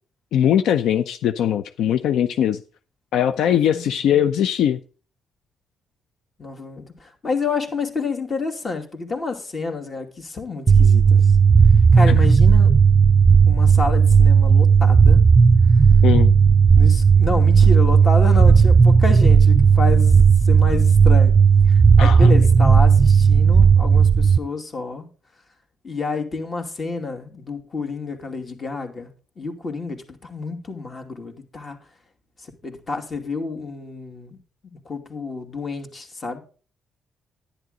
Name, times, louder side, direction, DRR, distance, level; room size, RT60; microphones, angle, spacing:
voice 1, 0.3-2.6 3.1-4.8 12.1-12.2 16.0-16.3 22.0-22.3, left 10 dB, 80° left, 0.6 m, -20 dB
voice 2, 3.7-4.2 6.4-11.2 11.9-12.7 13.5-15.2 16.8-21.3 21.7-25.1 25.8-29.1 29.4-31.8 32.6-34.4 34.6-36.4, left 3 dB, 40° left, 2.5 m, -29 dB
sound 1, 10.7-24.4, right 6 dB, 30° right, 0.4 m, -13 dB
11.0 x 10.5 x 3.8 m
cardioid pair, 90°, 0 cm